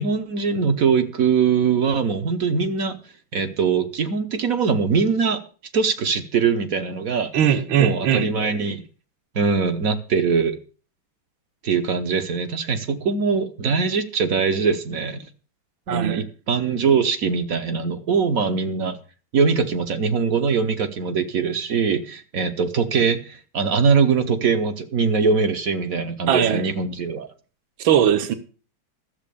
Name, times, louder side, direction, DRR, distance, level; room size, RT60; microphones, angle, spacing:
voice 1, 0.0-3.0 3.3-5.4 5.7-7.3 7.8-8.8 9.3-10.6 11.6-15.2 15.9-19.0 19.3-27.3, right 5 dB, 50° right, 1.2 m, -22 dB
voice 2, 7.3-8.3 15.9-16.2 26.3-26.7 27.8-28.3, right 9 dB, 75° right, 1.9 m, -19 dB
12.5 x 7.5 x 6.9 m
omnidirectional pair, 2.2 m